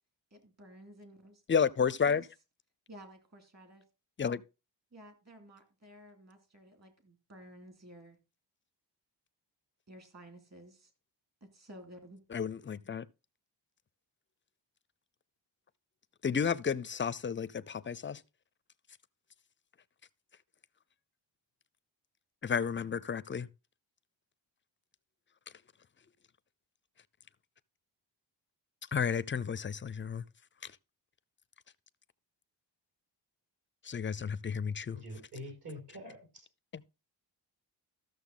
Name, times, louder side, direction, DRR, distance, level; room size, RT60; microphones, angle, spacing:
voice 1, 0.3-1.4 2.1-2.3 2.9-3.8 4.9-8.2 9.9-10.9 11.4-12.2, right 1 dB, 35° right, 2.7 m, -53 dB
voice 2, 1.5-2.2 4.2-4.4 12.3-13.0 16.2-18.2 22.4-23.5 28.9-30.2 33.9-35.0, left 6 dB, 30° left, 0.5 m, -31 dB
voice 3, 34.9-36.4, left 1 dB, 60° right, 6.6 m, -45 dB
13.5 x 6.6 x 3.8 m
wide cardioid pair, 105°, 44 cm